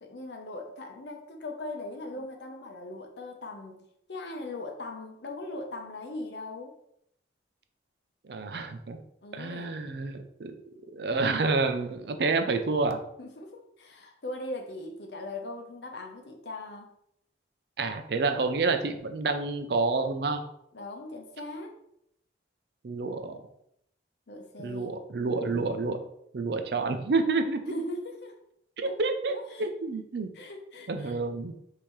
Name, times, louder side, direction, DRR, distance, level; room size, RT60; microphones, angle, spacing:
voice 1, 0.0-3.8 4.1-6.7 9.2-9.8 13.2-16.9 20.7-21.8 24.3-25.0 27.7-28.4 28.8-29.0 29.3-29.7 30.3-31.2, left 2 dB, 75° left, 3 dB, 0.7 m, -39 dB
voice 2, 8.3-9.0 9.3-10.5 10.9-13.0 17.8-20.4 22.8-23.4 24.6-26.0 26.3-27.6 28.8-30.3 30.9-31.6, right 3 dB, 60° right, 7 dB, 0.5 m, -29 dB
5.4 x 2.8 x 3.1 m, 0.76 s
head